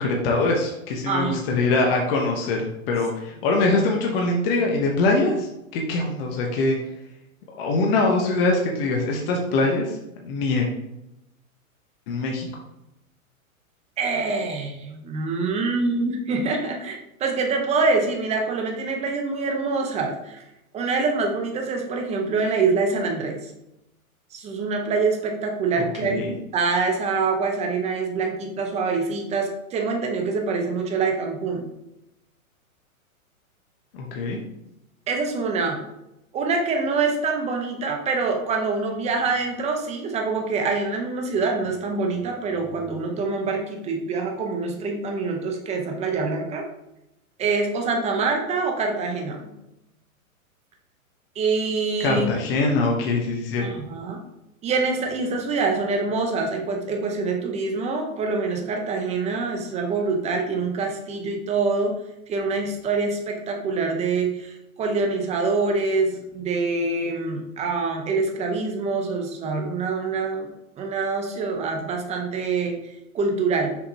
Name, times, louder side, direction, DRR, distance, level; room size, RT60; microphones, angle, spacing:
voice 1, 0.0-2.6 2.9-6.8 7.6-10.0 10.2-10.7 12.1-12.5 25.8-26.3 33.9-34.4 52.0-53.7, left 3 dB, 40° left, 0 dB, 1.1 m, -23 dB
voice 2, 1.1-1.6 14.0-20.4 20.7-23.5 24.3-26.2 26.5-31.7 35.1-35.8 36.3-46.6 47.4-49.4 51.4-52.3 53.6-54.2 54.6-62.0 62.3-70.5 70.8-73.8, right 4 dB, 15° right, 2 dB, 0.9 m, -25 dB
6.7 x 5.1 x 2.9 m, 0.88 s
hypercardioid pair, 140°, 42 cm